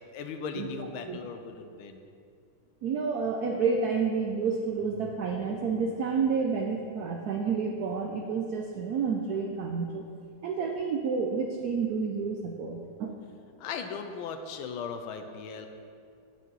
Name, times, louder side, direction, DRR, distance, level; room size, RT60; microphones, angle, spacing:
voice 1, 0.1-2.0 13.6-15.7, left 5 dB, 75° left, 7 dB, 1.4 m, -38 dB
voice 2, 2.8-10.0 10.4-13.1, right 5 dB, 90° right, 2 dB, 0.8 m, -29 dB
9.2 x 5.9 x 5.4 m, 2.4 s
omnidirectional pair, 2.3 m